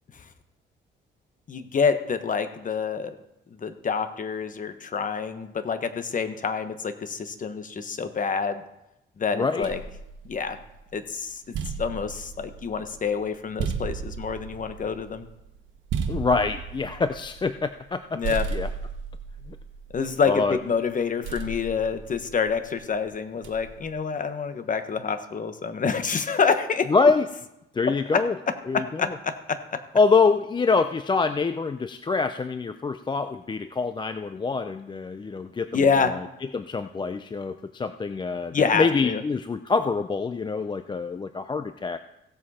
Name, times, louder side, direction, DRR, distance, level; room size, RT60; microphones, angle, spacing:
voice 1, 1.5-3.2 3.5-8.6 9.2-9.8 10.2-10.6 10.9-15.3 18.1-18.5 19.9-26.9 27.8-28.2 28.7-29.8 35.7-36.1 38.5-39.2, left 5 dB, 40° left, 9 dB, 1.2 m, -27 dB
voice 2, 9.3-9.7 16.1-18.2 18.5-18.7 19.5-19.6 20.2-20.6 26.9-27.3 27.7-28.3 28.7-29.2 29.9-36.2 36.5-42.0, left 4 dB, 25° left, 10 dB, 0.5 m, -25 dB
sound 1, 9.6-10.9 11.3-18.0 18.2-20.5 21.2-22.7 23.4-23.9, right 5 dB, 75° right, 1.3 m, -35 dB
16.5 x 7.5 x 4.2 m, 0.87 s
cardioid pair, 90°, 20 cm